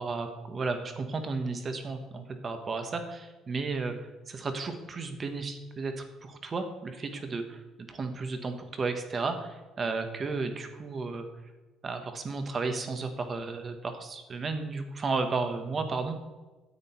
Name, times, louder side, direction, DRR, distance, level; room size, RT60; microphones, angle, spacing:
voice 1, 0.0-3.9 4.3-11.3 11.8-16.2, right 4 dB, 25° right, 7 dB, 1.2 m, -33 dB
9.6 x 9.0 x 4.4 m, 1.2 s
cardioid pair, 165°, 0 cm